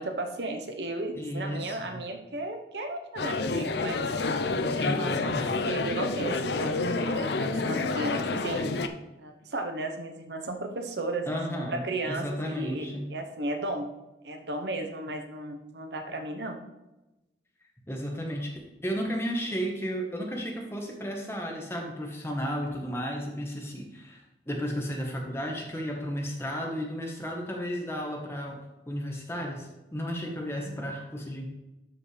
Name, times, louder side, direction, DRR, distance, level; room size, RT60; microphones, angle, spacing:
voice 1, 0.0-4.1 4.8-5.4 5.6-8.7 9.2-13.9 14.2-16.6 30.2-30.9, right 2 dB, 75° right, 5 dB, 1.0 m, -35 dB
voice 2, 1.1-2.0 4.7-5.5 11.3-13.1 17.9-18.5 18.8-31.5, equal, 15° left, 0 dB, 1.3 m, -33 dB
sound 1, 3.2-8.9, left 3 dB, 70° left, 0.6 m, -29 dB
12.0 x 5.5 x 3.3 m, 0.99 s
head